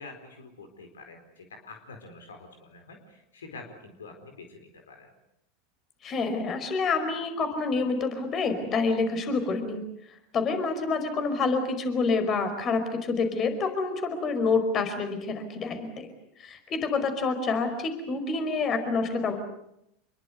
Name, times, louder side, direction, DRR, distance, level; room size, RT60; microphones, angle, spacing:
voice 1, 0.0-5.1, left 3 dB, 80° left, 5 dB, 4.4 m, -46 dB
voice 2, 6.0-9.8 10.3-16.1 16.4-19.4, left 4 dB, 35° left, 8 dB, 5.0 m, -27 dB
27.5 x 22.5 x 8.2 m, 0.79 s
figure-of-eight pair, 85°, 0 cm